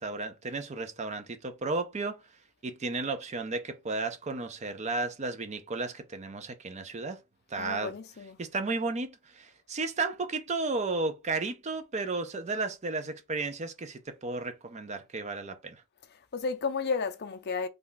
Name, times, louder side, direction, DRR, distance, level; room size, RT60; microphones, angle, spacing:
voice 1, 0.0-2.2 2.6-7.2 7.5-7.9 8.4-15.8, right 3 dB, 30° right, 0.5 m, -33 dB
voice 2, 7.6-8.4 16.1-17.7, left 5 dB, 50° left, 0.5 m, -33 dB
3.3 x 2.3 x 3.9 m
head